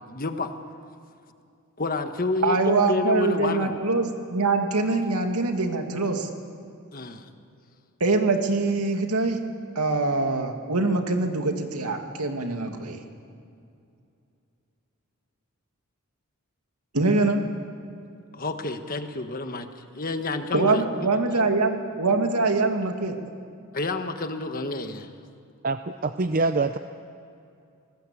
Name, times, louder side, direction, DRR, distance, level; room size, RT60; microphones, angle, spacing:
voice 1, 0.1-0.5 1.8-3.8 4.9-5.0 6.9-7.3 18.3-20.8 23.7-25.1, left 2 dB, 40° left, 7 dB, 1.4 m, -29 dB
voice 2, 2.4-6.3 8.0-9.4 9.8-13.0 16.9-17.4 20.5-23.2, right 3 dB, 90° right, 4 dB, 2.5 m, -24 dB
voice 3, 25.6-26.8, right 3 dB, 40° right, 9 dB, 0.6 m, -25 dB
27.5 x 19.5 x 8.6 m, 2.5 s
head